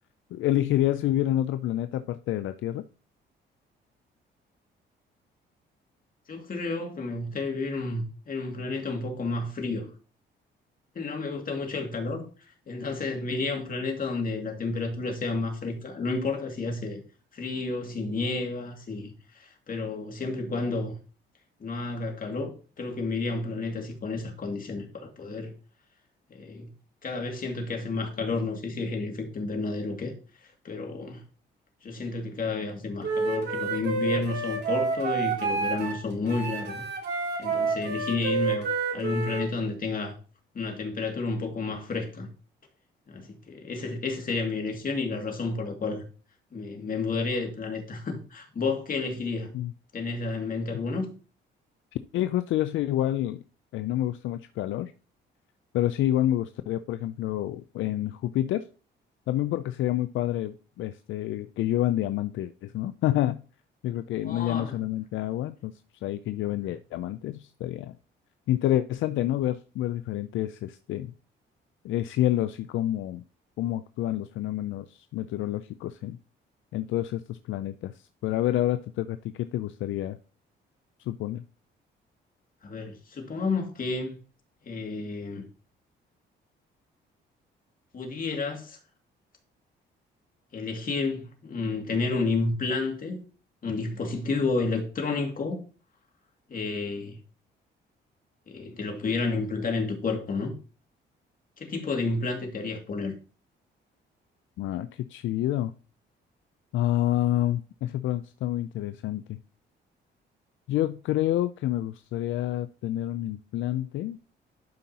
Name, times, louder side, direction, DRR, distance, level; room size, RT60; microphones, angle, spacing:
voice 1, 0.3-2.8 49.5-49.7 52.1-53.4 53.7-54.9 55.7-58.6 59.3-63.4 63.8-65.7 66.0-67.9 68.5-71.1 71.8-73.2 73.6-76.2 76.7-77.9 78.2-80.2 81.1-81.4 104.6-105.7 106.7-109.4 110.7-114.2, left 13 dB, 80° left, 0.4 m, -28 dB
voice 2, 6.3-9.9 10.9-12.3 12.7-17.0 17.3-20.9 21.6-22.5 22.8-25.5 26.3-26.7 27.0-30.1 30.4-31.2 31.8-36.8 37.4-40.2 40.5-42.3 43.1-46.0 46.5-49.5 49.9-51.1 64.2-64.8 82.6-84.2 84.6-85.4 87.9-88.8 90.5-93.2 93.6-95.6 96.5-97.2 98.5-100.6 101.6-103.1, left 3 dB, 45° left, 2.3 m, -31 dB
Wind instrument woodwind instrument, 33.0-36.0 36.3-39.5, right 4 dB, 55° right, 2.3 m, -29 dB
11.5 x 5.4 x 2.9 m
cardioid pair, 90°, 20 cm